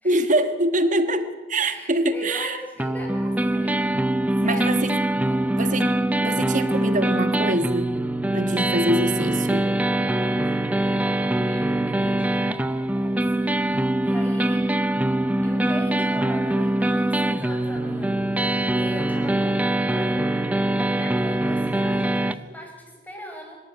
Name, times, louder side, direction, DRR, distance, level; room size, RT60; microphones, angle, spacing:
voice 1, 0.0-2.6 4.4-5.0 5.5-5.9 6.2-8.1 8.3-9.6, right 1 dB, 45° right, 10 dB, 1.4 m, -24 dB
voice 2, 1.6-3.9 4.4-4.7 5.3-5.6 9.5-14.6 15.4-18.4 18.7-20.5 20.8-23.6, equal, 10° left, 0 dB, 5.3 m, -39 dB
sound 1, 2.8-22.3, right 1 dB, 10° right, 0.6 m, -23 dB
24.5 x 12.5 x 8.9 m, 1.2 s
head